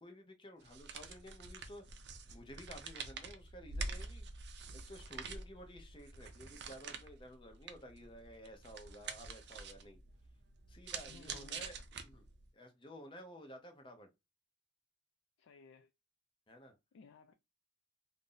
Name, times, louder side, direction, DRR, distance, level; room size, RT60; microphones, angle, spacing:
voice 1, 0.0-1.8 2.3-10.0 10.7-11.8 12.0-12.2 12.5-14.1 16.5-16.7, equal, 25° left, 0.6 m, -53 dB
sound 1, 0.6-12.5, right 4 dB, 60° right, 0.4 m, -47 dB
voice 2, 11.1-11.6 15.4-15.9 16.9-17.3, left 6 dB, 80° left, 0.3 m, -58 dB
2.5 x 2.0 x 3.7 m
head